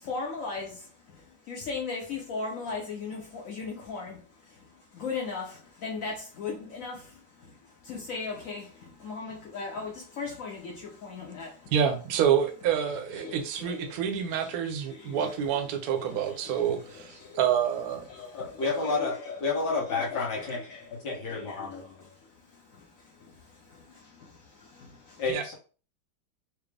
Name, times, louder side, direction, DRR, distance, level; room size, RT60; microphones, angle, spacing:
voice 1, 0.0-11.7 12.8-17.5 17.9-20.9 21.2-25.2, left 4 dB, 85° left, 0.7 m, -39 dB
voice 2, 11.7-18.0 18.6-18.8 25.3-25.4, right 8 dB, 70° right, 0.8 m, -28 dB
voice 3, 18.3-19.1 19.4-20.6 20.9-21.8 25.2-25.5, left 4 dB, 60° left, 1.5 m, -30 dB
4.7 x 2.0 x 3.3 m
omnidirectional pair, 2.3 m